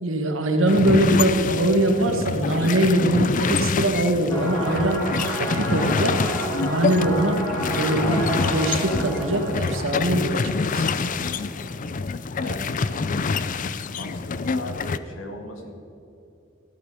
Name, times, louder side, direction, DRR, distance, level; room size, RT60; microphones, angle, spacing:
voice 1, 0.0-6.2 6.6-7.4 7.8-10.9, right 1 dB, 75° right, 4 dB, 1.6 m, -22 dB
sound 1, 0.7-15.0, left 4 dB, 40° left, 0.4 m, -26 dB
sound 2, 4.3-11.8, right 1 dB, 25° left, 2.7 m, -31 dB
voice 2, 12.3-13.6 13.9-15.7, left 1 dB, 85° left, 3 dB, 2.0 m, -38 dB
14.5 x 11.5 x 5.0 m, 2.7 s
head